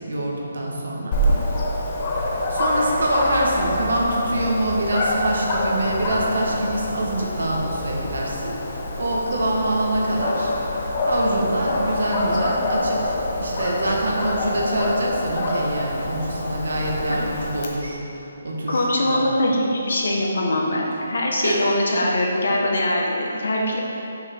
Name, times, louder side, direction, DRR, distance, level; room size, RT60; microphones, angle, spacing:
voice 1, 0.1-1.1 2.5-8.6 9.0-10.5 11.0-18.0 18.4-18.8 19.1-19.2 21.4-21.6, right 1 dB, 80° right, -2 dB, 1.4 m, -25 dB
Dog, 1.1-17.7, left 1 dB, 25° left, 0.7 m, -26 dB
voice 2, 18.7-23.8, left 1 dB, 70° left, -1 dB, 1.1 m, -22 dB
5.8 x 5.0 x 4.4 m, 2.9 s
hypercardioid pair, 170°, 0 cm